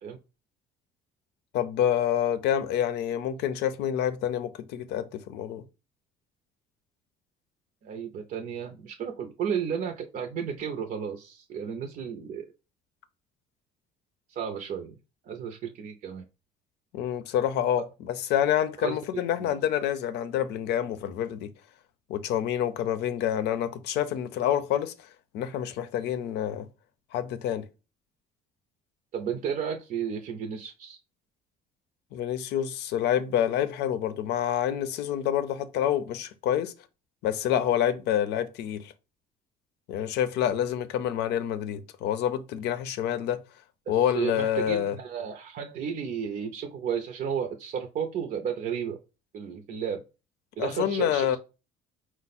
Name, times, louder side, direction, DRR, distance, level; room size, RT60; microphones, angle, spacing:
voice 1, 1.5-5.6 16.9-21.5 22.1-25.1 25.3-26.7 27.1-27.7 32.1-36.7 37.2-38.9 39.9-43.4 43.9-45.0 50.6-51.4, left 10 dB, 80° left, 0.6 m, -27 dB
voice 2, 7.8-12.5 14.3-15.0 15.2-16.2 18.8-19.0 19.4-19.5 29.1-31.0 43.9-49.0 49.3-50.0 50.6-51.4, right 7 dB, 55° right, 0.5 m, -33 dB
4.6 x 2.1 x 4.1 m
cardioid pair, 110°, 17 cm